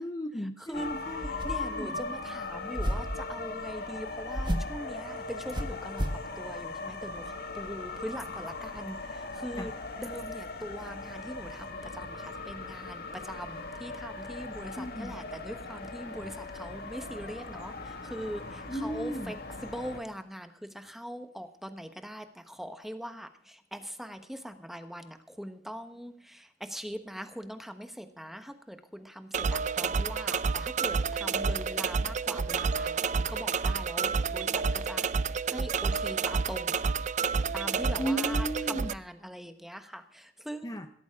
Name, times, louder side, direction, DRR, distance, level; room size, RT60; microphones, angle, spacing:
voice 1, 0.0-1.3 1.6-2.0 9.6-9.7 14.8-15.2 18.7-19.4 38.0-38.9 40.6-40.9, equal, 20° left, 8 dB, 0.7 m, -35 dB
sound 1, 0.7-20.0, left 3 dB, 60° left, 1.8 m, -39 dB
sound 2, 1.2-1.8 2.8-3.2 4.3-4.8 5.5-6.3, equal, 25° right, 1.4 m, -32 dB
voice 2, 1.4-6.1 6.4-9.7 10.0-19.4 19.6-36.8 37.5-40.8, equal, ahead, 8 dB, 1.2 m, -42 dB
sound 3, 29.3-38.9, right 5 dB, 40° right, 0.5 m, -29 dB
16.5 x 13.5 x 3.7 m, 0.63 s
head